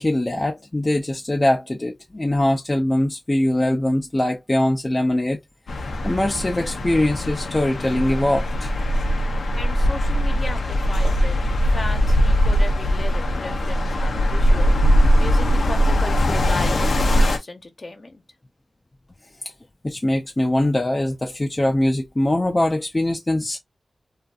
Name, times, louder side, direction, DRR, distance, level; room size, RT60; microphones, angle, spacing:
voice 1, 0.0-5.4 6.0-8.7 19.4-19.5 19.8-23.6, left 1 dB, 30° left, 0.4 m, -22 dB
sound 1, 5.7-17.4, equal, 85° left, 0.5 m, -20 dB
voice 2, 9.6-11.4 11.7-14.7 15.2-18.2, left 2 dB, 50° left, 0.8 m, -35 dB
2.5 x 2.5 x 2.3 m
cardioid pair, 60°, 0 cm